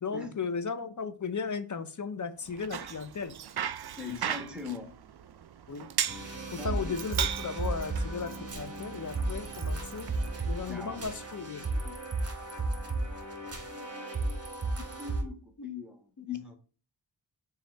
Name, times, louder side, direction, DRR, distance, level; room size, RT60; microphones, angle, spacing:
voice 1, 0.0-3.3 5.7-5.9 6.5-10.1 10.4-11.7 16.2-16.3, left 5 dB, 40° left, 10 dB, 0.6 m, -36 dB
Bicycle, 2.4-10.8, right 9 dB, 60° right, 0.5 m, -38 dB
voice 2, 4.0-4.9 6.6-6.9 10.7-11.1 11.6-12.0 13.1-13.2 15.0-16.6, left 5 dB, ahead, 3 dB, 1.3 m, -41 dB
sound 1, 6.1-15.2, right 2 dB, 35° right, 1.1 m, -34 dB
5.8 x 2.5 x 3.3 m, 0.37 s
cardioid pair, 45°, 45 cm